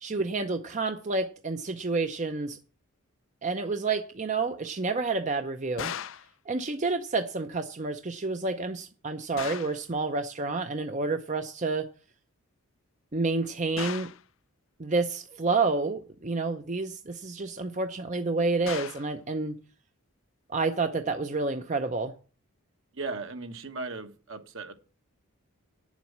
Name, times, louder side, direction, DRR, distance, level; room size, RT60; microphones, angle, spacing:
voice 1, 0.0-2.6 3.4-5.9 6.5-11.9 13.1-14.1 14.8-19.6 20.5-22.2, right 3 dB, 35° right, 0.6 m, -29 dB
sound 1, 5.8-6.3 9.4-9.8 13.8-14.2 18.7-19.1, left 8 dB, 60° left, 0.5 m, -37 dB
voice 2, 22.9-24.7, right 3 dB, 60° right, 1.4 m, -37 dB
9.5 x 7.4 x 7.3 m
head